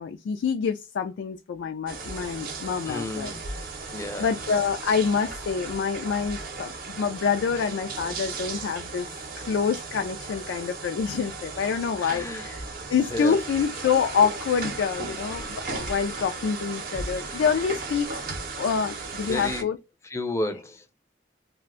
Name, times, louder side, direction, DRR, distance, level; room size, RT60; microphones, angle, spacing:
voice 1, 0.0-3.3 4.2-9.1 9.4-12.6 12.9-19.8, left 6 dB, 85° left, 0.3 m, -27 dB
sound 1, 1.9-19.6, right 3 dB, 50° right, 0.6 m, -36 dB
voice 2, 2.9-3.4 3.9-4.3 12.0-12.5 13.1-13.4 19.3-19.7 20.1-20.9, left 1 dB, 15° left, 0.4 m, -31 dB
2.5 x 2.1 x 3.6 m
head